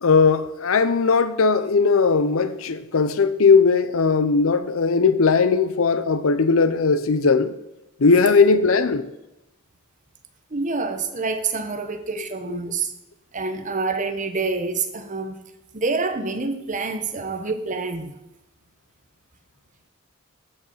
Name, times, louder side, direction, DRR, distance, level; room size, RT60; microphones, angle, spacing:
voice 1, 0.0-7.5 8.0-9.0 12.5-12.6, left 4 dB, 70° left, 0.6 m, -18 dB
voice 2, 10.5-12.9 13.3-15.4 15.7-18.2, right 4 dB, 35° right, 0.9 m, -27 dB
13.0 x 5.3 x 5.6 m
head